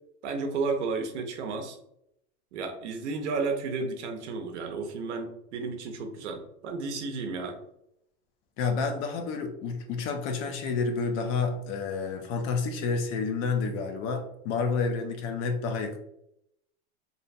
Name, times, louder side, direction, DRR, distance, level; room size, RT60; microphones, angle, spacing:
voice 1, 0.2-1.8 2.5-7.6, right 4 dB, 90° right, 5 dB, 0.7 m, -32 dB
voice 2, 8.6-16.0, left 4 dB, 40° left, 6 dB, 0.4 m, -29 dB
2.7 x 2.1 x 2.6 m, 0.76 s
supercardioid pair, 135°, 34 cm